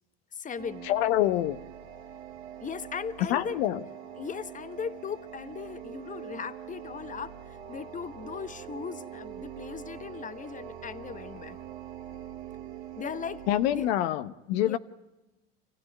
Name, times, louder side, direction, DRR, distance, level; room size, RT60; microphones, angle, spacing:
voice 1, 0.3-0.9 2.6-3.6 4.2-11.6 13.0-13.4 13.7-13.9 14.6-14.8, left 6 dB, 25° left, 1.0 m, -38 dB
sound 1, 0.6-13.9, right 9 dB, 75° right, 2.3 m, -44 dB
voice 2, 0.8-1.6 3.3-3.8 13.5-14.8, left 13 dB, 75° left, 1.0 m, -26 dB
27.0 x 15.5 x 9.5 m
hypercardioid pair, 85°, 31 cm